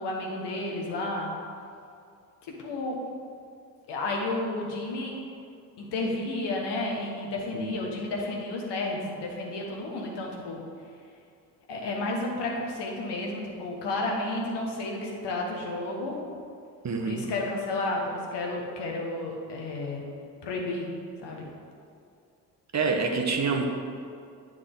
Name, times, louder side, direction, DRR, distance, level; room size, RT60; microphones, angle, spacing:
voice 1, 0.0-1.3 2.4-3.0 3.9-5.1 5.8-10.6 11.7-16.2 17.0-20.1 20.4-20.9 21.2-21.5, left 2 dB, 60° left, -1 dB, 1.5 m, -32 dB
voice 2, 16.8-17.3 22.7-23.7, right 4 dB, 35° right, 3 dB, 1.0 m, -27 dB
9.6 x 4.6 x 3.8 m, 2.5 s
hypercardioid pair, 45°, 46 cm